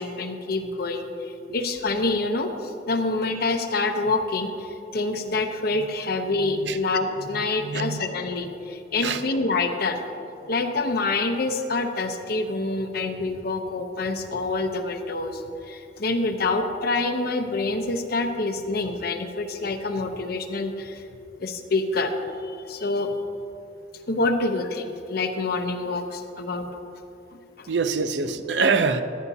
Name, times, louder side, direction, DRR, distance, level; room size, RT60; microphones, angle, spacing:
voice 1, 0.0-10.0 10.5-21.0 21.4-22.1 22.4-23.1 24.1-26.8 27.3-27.7, left 3 dB, 60° left, 6 dB, 0.7 m, -27 dB
voice 2, 6.4-6.8 7.2-8.0 9.0-9.3 27.7-29.0, right 4 dB, 75° right, 10 dB, 0.6 m, -25 dB
14.0 x 11.0 x 2.8 m, 2.8 s
head